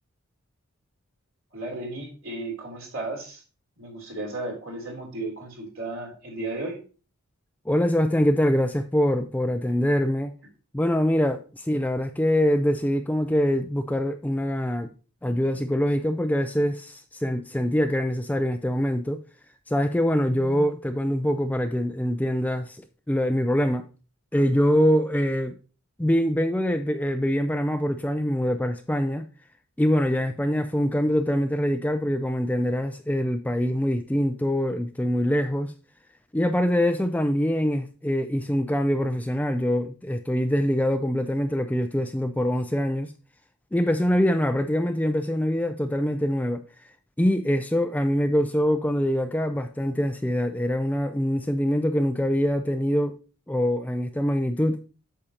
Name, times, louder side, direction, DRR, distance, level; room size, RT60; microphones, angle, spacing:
voice 1, 1.5-3.4 3.8-6.8, right 2 dB, 60° right, 3.3 m, -34 dB
voice 2, 7.7-10.3 10.7-14.9 15.2-19.2 19.7-23.8 24.3-25.5 26.0-29.3 29.8-35.7 36.3-43.1 43.7-46.6 47.2-53.2 53.5-54.8, equal, 5° left, 0.4 m, -24 dB
8.6 x 6.5 x 2.9 m
head